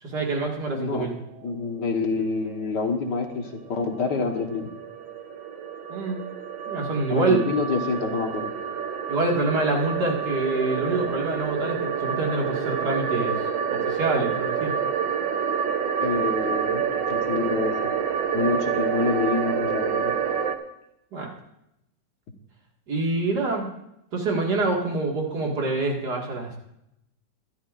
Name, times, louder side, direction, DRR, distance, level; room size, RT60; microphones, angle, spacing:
voice 1, 0.0-1.1 5.9-6.2 6.7-7.4 9.1-13.4 13.7-14.7 21.1-21.3 22.9-23.7 24.1-26.6, right 3 dB, 65° right, -1 dB, 2.5 m, -26 dB
voice 2, 0.7-1.1 1.4-4.7 7.1-8.5 16.0-16.8 17.1-17.9 18.3-20.2, left 4 dB, 70° left, 4 dB, 1.9 m, -27 dB
sound 1, 3.3-20.5, right 7 dB, 85° right, 1.6 m, -28 dB
22.0 x 12.0 x 2.5 m, 0.81 s
omnidirectional pair, 1.9 m